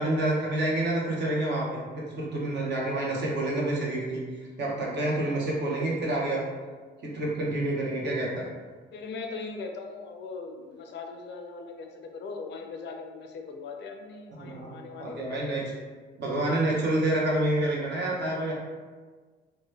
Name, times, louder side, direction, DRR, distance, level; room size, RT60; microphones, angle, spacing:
voice 1, 0.0-4.2 4.6-6.4 7.0-8.5 14.4-14.7 15.0-15.7 16.2-18.5, right 1 dB, 60° right, -3 dB, 0.9 m, -28 dB
voice 2, 5.5-5.9 8.9-15.8, left 4 dB, 60° left, 3 dB, 0.5 m, -40 dB
2.9 x 2.1 x 3.2 m, 1.4 s
cardioid pair, 90°, 20 cm